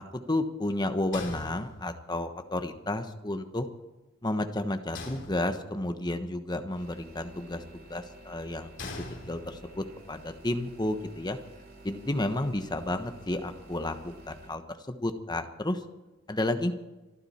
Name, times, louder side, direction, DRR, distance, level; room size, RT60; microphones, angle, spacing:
voice 1, 0.0-3.7 4.2-8.7 9.3-11.4 11.8-14.6 14.9-15.8 16.3-16.7, left 1 dB, 20° left, 8 dB, 1.1 m, -31 dB
sound 1, 1.1-2.2 4.9-6.0 8.8-9.9, left 2 dB, 60° left, 2.8 m, -42 dB
sound 2, 6.8-14.5, right 2 dB, 50° right, 3.6 m, -51 dB
25.5 x 11.5 x 4.4 m, 1.1 s
head